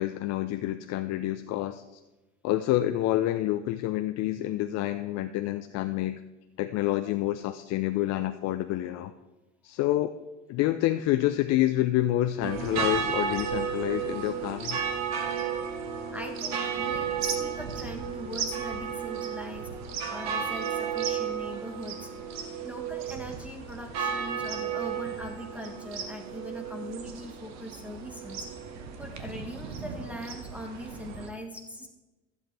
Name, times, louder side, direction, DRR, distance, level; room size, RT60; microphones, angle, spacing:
voice 1, 0.0-2.0 2.4-6.2 6.6-9.1 9.6-10.1 10.5-14.8, left 14 dB, 50° left, 9 dB, 0.6 m, -28 dB
sound 1, 12.4-31.3, right 7 dB, 50° right, 1.8 m, -33 dB
voice 2, 16.1-19.7 20.1-22.1 22.6-28.5 29.0-31.9, equal, 5° right, 1 dB, 1.3 m, -41 dB
15.0 x 8.1 x 3.4 m, 1.1 s
hypercardioid pair, 85°, 34 cm